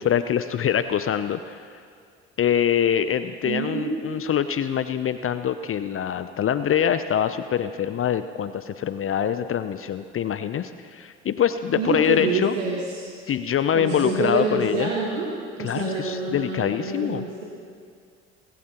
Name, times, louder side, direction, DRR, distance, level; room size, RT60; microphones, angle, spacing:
voice 1, 0.0-1.6 2.4-12.5 13.3-14.9 15.6-17.2, left 9 dB, 35° left, 11 dB, 0.6 m, -24 dB
voice 2, 3.4-4.1 11.7-13.0 13.7-15.3 15.6-17.4, right 4 dB, 90° right, -3 dB, 1.5 m, -27 dB
19.5 x 16.5 x 3.0 m, 2.2 s
hypercardioid pair, 65°, 36 cm